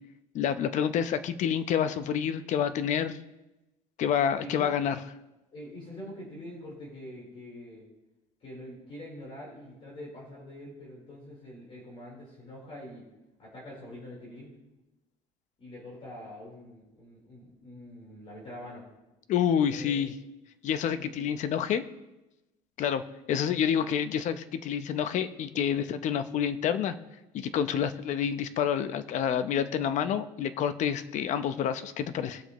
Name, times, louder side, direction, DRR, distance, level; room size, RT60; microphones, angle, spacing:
voice 1, 0.3-3.2 4.0-5.0 19.3-20.1 20.6-21.8 22.8-23.0 23.3-27.0 27.3-32.4, left 8 dB, 55° left, 11 dB, 0.8 m, -28 dB
voice 2, 4.4-4.7 5.5-7.8 8.4-13.1 13.4-14.5 15.6-18.8 19.7-20.0 21.0-21.1, left 1 dB, 40° left, -5 dB, 4.1 m, -45 dB
20.0 x 7.1 x 3.1 m, 1.0 s
cardioid pair, 115°, 14 cm